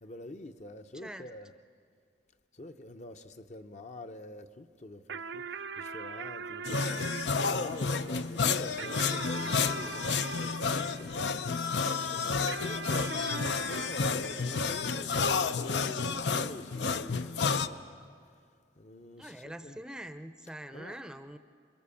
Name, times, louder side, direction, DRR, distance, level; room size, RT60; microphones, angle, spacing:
voice 1, 0.0-1.5 2.5-7.1 7.4-18.3 18.8-19.8 20.7-21.0, left 1 dB, 40° left, 0.8 m, -46 dB
voice 2, 0.9-1.3 19.2-21.4, right 1 dB, 5° right, 0.6 m, -44 dB
sound 1, 5.1-11.8 12.5-15.3, right 5 dB, 80° right, 0.6 m, -42 dB
sound 2, 6.6-17.7, left 5 dB, 75° left, 0.7 m, -31 dB
28.0 x 22.5 x 7.1 m
head